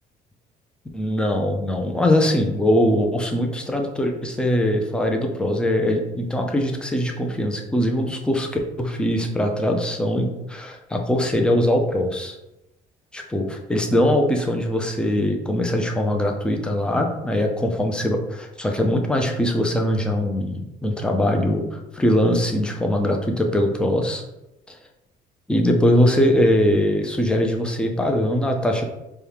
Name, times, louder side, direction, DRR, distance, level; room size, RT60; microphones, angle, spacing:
voice 1, 0.9-8.5 8.8-12.4 13.1-24.2 24.7-24.8 25.5-28.8, left 1 dB, 5° left, 3 dB, 0.5 m, -21 dB
4.3 x 2.4 x 3.5 m, 0.92 s
cardioid pair, 110°, 17 cm